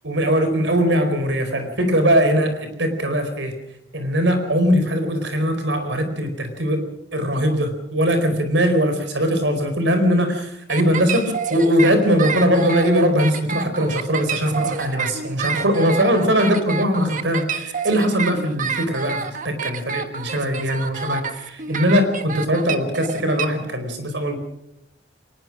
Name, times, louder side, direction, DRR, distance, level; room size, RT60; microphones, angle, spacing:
voice 1, 0.0-3.5 3.9-6.8 7.1-24.4, equal, 80° right, 8 dB, 4.6 m, -20 dB
sound 1, 10.7-23.5, right 6 dB, 45° right, 1.5 m, -28 dB
23.0 x 19.5 x 6.1 m, 0.81 s
head